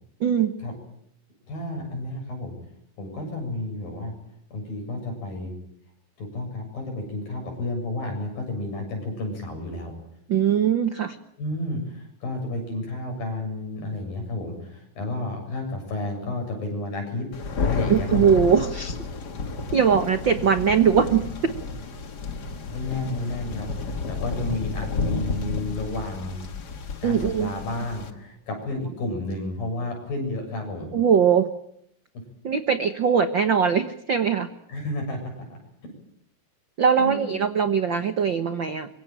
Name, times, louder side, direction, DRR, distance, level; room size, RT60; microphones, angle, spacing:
voice 1, 0.2-0.5 10.3-11.2 17.9-19.0 19.7-21.5 27.0-27.5 30.9-31.5 32.4-34.5 36.8-38.9, right 7 dB, 80° right, 9 dB, 1.0 m, -21 dB
voice 2, 1.5-2.5 3.0-4.1 4.5-5.6 6.2-9.9 11.4-17.3 17.6-18.3 22.7-26.5 27.0-30.9 34.7-35.9 37.0-37.3, left 2 dB, 75° left, 3 dB, 9.1 m, -31 dB
Thunder, 17.3-28.1, left 4 dB, 40° left, 1.5 m, -31 dB
25.0 x 24.0 x 9.0 m, 0.72 s
omnidirectional pair, 4.1 m